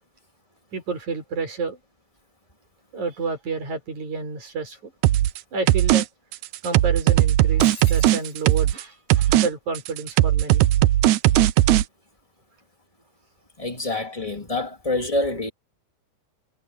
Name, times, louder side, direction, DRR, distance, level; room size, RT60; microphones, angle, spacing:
voice 1, 0.7-1.8 2.9-4.9 5.5-6.1 6.6-10.7, right 4 dB, 55° right, 7.2 m, -30 dB
sound 1, 5.0-5.4 5.7-6.0 6.3-8.8 9.1-9.5 9.8-11.8, right 14 dB, 75° right, 1.7 m, -18 dB
Shatter, 7.6-8.8, left 3 dB, 65° left, 9.6 m, -40 dB
voice 2, 13.6-15.5, left 2 dB, 10° left, 2.5 m, -26 dB
omnidirectional pair, 4.1 m